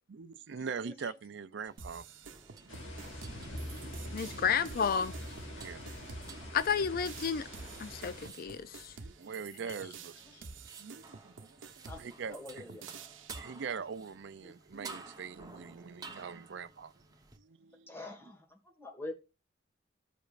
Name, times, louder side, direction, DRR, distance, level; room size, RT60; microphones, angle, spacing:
voice 1, 0.1-2.1 2.5-3.2 3.9-4.1 4.3-4.4 5.5-5.8 6.3-6.5 9.0-10.2 10.8-12.6 13.3-17.0 17.4-17.9, right 6 dB, 65° right, 0.5 m, -43 dB
sound 1, 1.7-17.4, right 4 dB, 20° right, 1.0 m, -54 dB
sound 2, 1.8-13.4, right 5 dB, 80° right, 0.8 m, -50 dB
sound 3, 2.7-8.3, equal, 85° left, 2.0 m, -44 dB
voice 2, 4.1-5.1 6.5-7.5 7.8-8.9, left 7 dB, 50° left, 0.4 m, -31 dB
voice 3, 11.8-12.9 14.4-14.9 17.9-19.1, left 2 dB, 10° left, 1.7 m, -46 dB
15.0 x 5.1 x 2.5 m
head